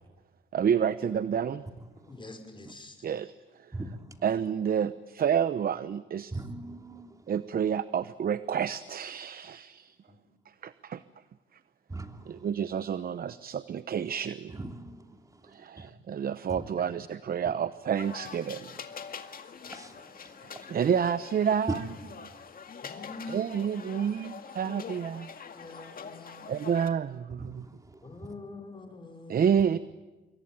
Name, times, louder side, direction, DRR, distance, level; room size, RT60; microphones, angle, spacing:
voice 1, 0.5-1.6 3.0-3.3 3.6-3.7 4.2-6.3 7.3-10.0 10.6-11.0 12.3-14.5 15.4-18.7 20.4-21.9 23.3-25.3 26.5-27.7 29.3-29.8, right 8 dB, 50° right, 14 dB, 0.9 m, -29 dB
voice 2, 2.0-3.1 10.1-10.2 22.8-24.2 25.5-26.5 28.0-29.6, left 2 dB, 25° left, 5 dB, 5.8 m, -46 dB
voice 3, 3.7-4.1 6.3-7.3 11.9-12.3 14.6-15.2 15.5-15.9 16.5-16.6 19.7-20.7 27.4-28.0, right 2 dB, 15° right, 5 dB, 2.8 m, -42 dB
sound 1, 18.0-26.9, left 6 dB, 45° left, 2.1 m, -44 dB
27.0 x 23.0 x 9.2 m, 1.2 s
cardioid pair, 90°, 20 cm